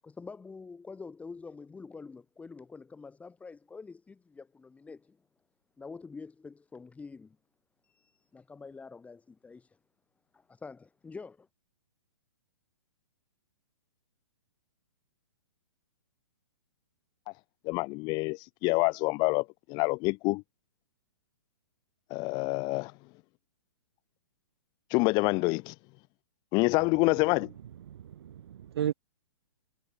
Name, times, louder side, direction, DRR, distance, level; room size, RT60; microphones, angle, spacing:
voice 1, 0.0-5.2 5.8-7.4 7.8-9.8 10.3-11.5, left 4 dB, 10° left, 4.7 m, -46 dB
voice 2, 17.6-20.4 22.1-22.9 24.9-25.7 26.5-27.5, left 27 dB, 30° left, 0.7 m, -27 dB
voice 3, 27.9-28.9, right 10 dB, 60° right, 2.6 m, -34 dB
hypercardioid pair, 125°, 15 cm